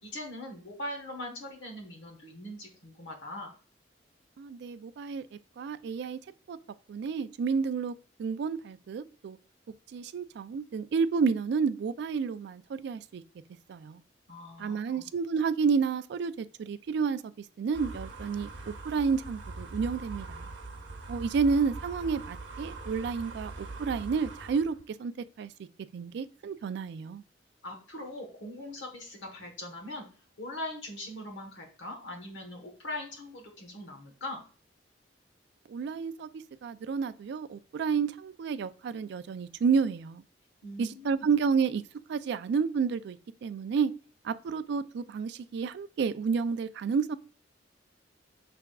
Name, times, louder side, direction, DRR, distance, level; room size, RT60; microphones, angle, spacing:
voice 1, 0.0-3.5 14.3-15.1 27.6-30.1 30.4-34.4 40.6-41.1, left 1 dB, 75° left, 1.1 m, -41 dB
voice 2, 4.4-5.2 5.6-6.2 6.5-6.6 6.9-9.4 9.9-13.2 13.7-14.0 14.6-17.2 17.6-20.5 21.1-25.1 25.4-25.5 25.9-27.2 35.7-36.3 36.6-40.2 40.8-41.8 42.1-43.2 43.4-43.9 44.2-47.2, right 5 dB, 65° right, 0.3 m, -30 dB
sound 1, 17.7-24.8, right 3 dB, 85° right, 0.9 m, -42 dB
5.8 x 3.4 x 2.3 m
head